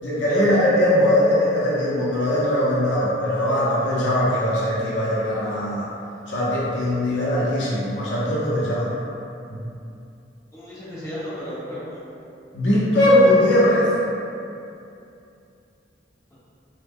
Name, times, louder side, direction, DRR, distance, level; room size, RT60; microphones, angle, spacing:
voice 1, 0.0-5.9 6.3-8.9 9.5-9.7 12.5-13.9, left 1 dB, 80° left, -7 dB, 0.6 m, -20 dB
voice 2, 10.5-12.0 16.3-16.4, equal, 20° left, -12 dB, 0.8 m, -33 dB
2.1 x 2.0 x 3.5 m, 2.6 s
head